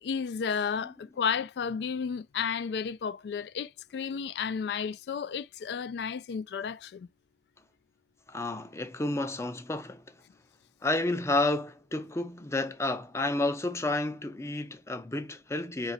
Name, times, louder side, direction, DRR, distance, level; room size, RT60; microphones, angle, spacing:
voice 1, 0.0-7.1, left 6 dB, 65° left, 0.3 m, -32 dB
voice 2, 8.3-10.1 10.8-15.9, left 2 dB, 15° left, 0.5 m, -31 dB
5.0 x 2.4 x 3.9 m
head